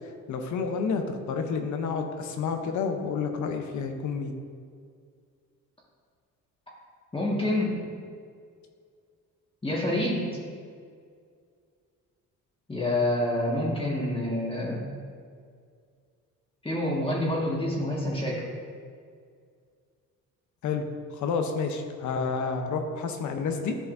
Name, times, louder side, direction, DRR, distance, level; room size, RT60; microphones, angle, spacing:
voice 1, 0.3-4.3 20.6-20.8 21.1-23.8, left 5 dB, 75° left, 5 dB, 0.8 m, -29 dB
voice 2, 7.1-7.8 9.6-10.2 12.7-14.8 16.6-18.4, left 1 dB, 15° left, -5 dB, 1.6 m, -27 dB
11.0 x 5.7 x 2.6 m, 2.1 s
cardioid pair, 90°, 30 cm